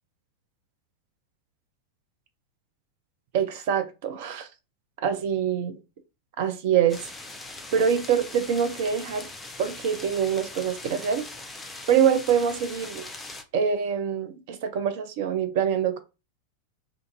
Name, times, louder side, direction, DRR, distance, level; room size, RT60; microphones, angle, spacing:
voice 1, 3.3-4.5 5.0-5.8 6.4-7.0 7.7-9.3 9.6-11.3 11.9-13.0 13.5-16.0, right 8 dB, 50° right, 0.6 m, -25 dB
sound 1, 6.9-13.4, left 2 dB, 10° left, 0.6 m, -41 dB
2.5 x 2.5 x 2.7 m
figure-of-eight pair, 90°, 0 cm